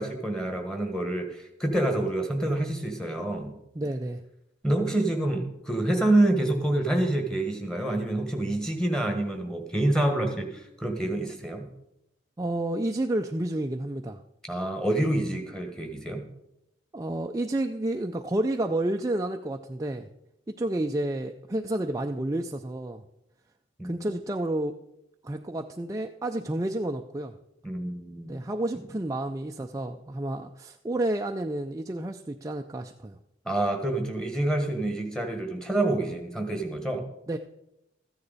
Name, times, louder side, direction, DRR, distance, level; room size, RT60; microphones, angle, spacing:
voice 1, 0.0-3.5 4.6-11.7 14.5-16.2 23.8-24.0 27.6-28.3 33.4-37.0, right 1 dB, 5° left, 3 dB, 1.4 m, -27 dB
voice 2, 3.8-4.2 12.4-14.2 16.9-20.1 20.5-23.0 23.8-24.7 25.2-27.3 28.3-33.2 37.3-37.4, right 1 dB, 15° right, 4 dB, 0.4 m, -30 dB
14.0 x 9.8 x 4.1 m, 0.85 s
head